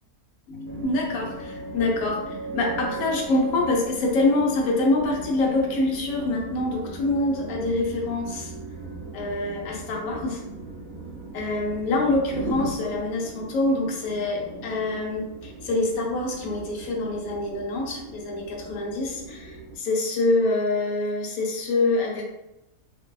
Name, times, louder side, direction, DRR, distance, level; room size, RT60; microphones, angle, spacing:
voice 1, 0.5-8.5 9.1-10.4 11.3-22.2, left 2 dB, 70° left, -1 dB, 1.0 m, -25 dB
sound 1, 0.7-19.8, right 2 dB, 55° right, 0.7 m, -38 dB
2.6 x 2.2 x 2.2 m, 0.94 s
omnidirectional pair, 1.6 m